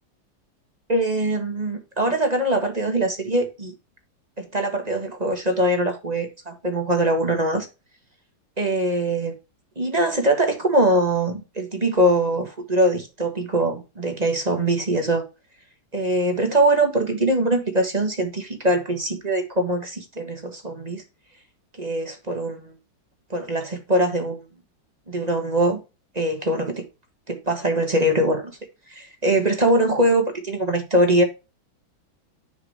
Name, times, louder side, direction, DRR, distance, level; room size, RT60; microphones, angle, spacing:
voice 1, 0.9-3.7 4.4-7.7 8.6-9.3 9.8-15.2 15.9-21.0 21.8-22.7 23.3-24.4 25.1-25.8 26.1-26.8 27.3-28.5 28.9-31.2, right 1 dB, 20° right, 1.5 m, -22 dB
9.7 x 4.5 x 4.7 m
omnidirectional pair, 2.2 m